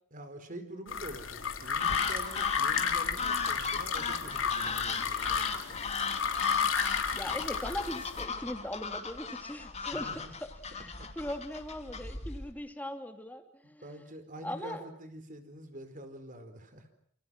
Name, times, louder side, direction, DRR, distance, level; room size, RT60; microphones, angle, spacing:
voice 1, 0.1-5.8 9.9-10.3 11.0-11.1 12.0-12.1 13.8-16.9, right 1 dB, 45° right, 8 dB, 4.4 m, -46 dB
sound 1, 0.9-8.2, left 6 dB, 80° left, 3.2 m, -32 dB
sound 2, 1.8-12.5, left 5 dB, 35° left, 2.7 m, -37 dB
voice 2, 7.1-10.1 10.4-14.0 14.4-14.9, left 1 dB, 10° left, 6 dB, 2.9 m, -40 dB
28.5 x 28.0 x 6.4 m, 0.62 s
head